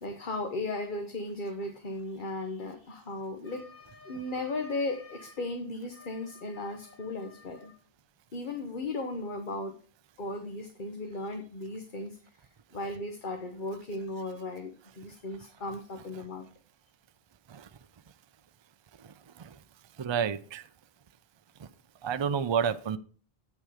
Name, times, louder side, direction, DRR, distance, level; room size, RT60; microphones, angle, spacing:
voice 1, 0.0-7.7 8.3-9.7 10.2-12.2 12.7-16.4, left 2 dB, 50° left, 1.2 m, -36 dB
voice 2, 19.0-19.6 20.0-20.6 21.6-21.7 22.0-23.0, right 7 dB, 40° right, 0.4 m, -30 dB
8.6 x 6.4 x 4.9 m
omnidirectional pair, 1.1 m